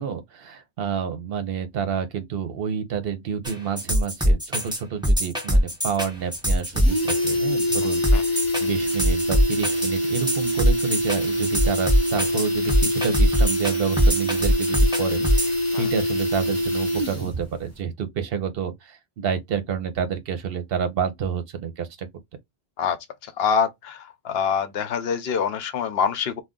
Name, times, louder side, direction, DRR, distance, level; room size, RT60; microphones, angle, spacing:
voice 1, 0.0-22.1, right 7 dB, 70° right, 0.9 m, -29 dB
sound 1, 3.4-15.5, equal, 5° right, 0.7 m, -22 dB
sound 2, 5.8-5.9 6.2-6.3 6.6-17.4 17.7-17.8, equal, 15° left, 1.0 m, -25 dB
voice 2, 23.4-24.0 24.2-26.4, left 7 dB, 75° left, 0.9 m, -24 dB
2.5 x 2.2 x 3.6 m
omnidirectional pair, 1.0 m